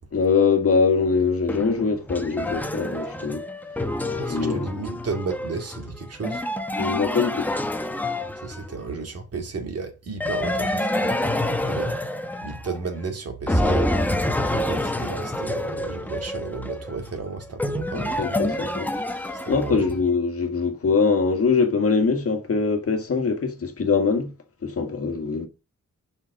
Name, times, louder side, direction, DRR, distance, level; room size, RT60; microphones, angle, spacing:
voice 1, 0.1-3.4 4.3-4.7 6.8-7.5 17.9-24.3 24.6-25.5, left 5 dB, 50° left, 1.7 m, -23 dB
sound 1, 1.5-8.9 10.2-13.1 13.5-19.9, left 1 dB, 5° left, 0.9 m, -27 dB
voice 2, 4.1-6.4 8.4-12.0 12.4-14.0 14.5-18.4 19.5-19.9, right 4 dB, 55° right, 2.2 m, -33 dB
7.3 x 5.9 x 6.4 m
wide cardioid pair, 150°, 30 cm